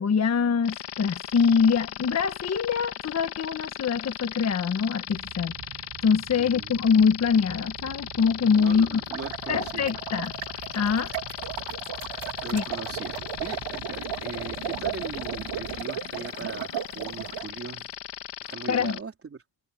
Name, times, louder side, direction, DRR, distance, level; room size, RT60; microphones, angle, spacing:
voice 1, 0.0-5.5 6.0-9.0 9.5-10.3 10.7-11.1 12.5-12.6 18.7-19.0, left 6 dB, 35° left, 1.3 m, -24 dB
sound 1, 0.6-19.0, left 10 dB, 75° left, 2.1 m, -37 dB
sound 2, 5.1-15.8, right 9 dB, 60° right, 7.4 m, -46 dB
voice 2, 6.3-6.8 8.4-9.9 12.4-17.9 18.4-19.4, right 5 dB, 30° right, 3.9 m, -39 dB
sound 3, 9.0-17.5, right 11 dB, 90° right, 2.8 m, -36 dB
wide cardioid pair, 175°, 42 cm